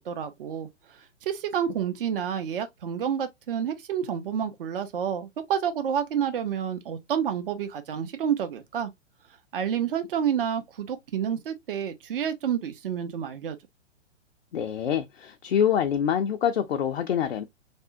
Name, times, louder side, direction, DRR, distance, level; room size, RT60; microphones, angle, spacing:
voice 1, 0.0-8.9 9.5-13.6, right 8 dB, 45° right, 0.6 m, -29 dB
voice 2, 14.5-17.4, left 8 dB, 55° left, 0.4 m, -25 dB
3.4 x 2.1 x 2.5 m
figure-of-eight pair, 115°, 37 cm